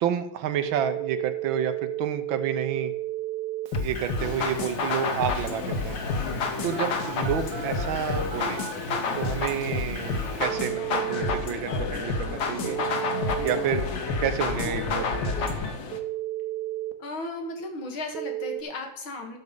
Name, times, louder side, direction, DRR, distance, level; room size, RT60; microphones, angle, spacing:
voice 1, 0.0-2.9 3.8-6.0 6.6-8.6 9.2-12.8 13.4-13.9 14.2-15.7, right 8 dB, 80° right, 10 dB, 1.5 m, -30 dB
Telephone, 0.6-11.4 12.6-13.6 15.9-16.9 18.1-18.6, right 14 dB, 60° right, 0.9 m, -35 dB
sound 1, 3.7-15.7, left 4 dB, 60° left, 1.7 m, -30 dB
sound 2, 4.2-16.0, left 4 dB, 45° left, 1.1 m, -36 dB
voice 2, 17.0-19.4, left 2 dB, 90° left, 3 dB, 2.5 m, -36 dB
12.0 x 6.5 x 5.3 m, 0.77 s
omnidirectional pair, 2.2 m